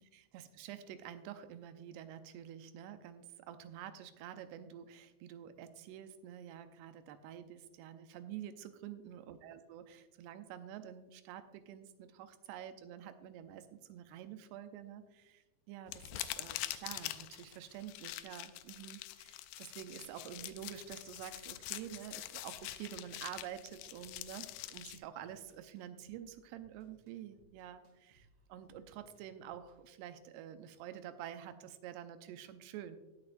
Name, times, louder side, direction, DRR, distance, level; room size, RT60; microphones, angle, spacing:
voice 1, 0.0-33.0, right 10 dB, 85° right, 10 dB, 2.7 m, -48 dB
sound 1, 15.9-25.0, left 15 dB, 85° left, 2.4 m, -45 dB
sound 2, 20.3-29.8, right 1 dB, 50° right, 2.8 m, -69 dB
17.5 x 6.4 x 2.6 m, 1.1 s
omnidirectional pair, 4.6 m